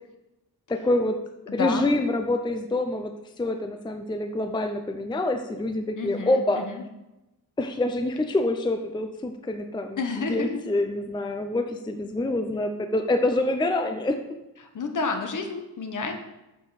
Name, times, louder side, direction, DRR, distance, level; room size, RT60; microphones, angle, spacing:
voice 1, 0.7-1.2 1.5-3.1 3.4-6.6 7.6-10.0 10.3-14.2, left 2 dB, 10° left, 6 dB, 0.5 m, -26 dB
voice 2, 1.5-2.0 6.0-6.8 10.0-10.6 14.6-16.1, left 4 dB, 55° left, 5 dB, 1.2 m, -30 dB
8.5 x 6.8 x 4.1 m, 0.97 s
wide cardioid pair, 145°, 37 cm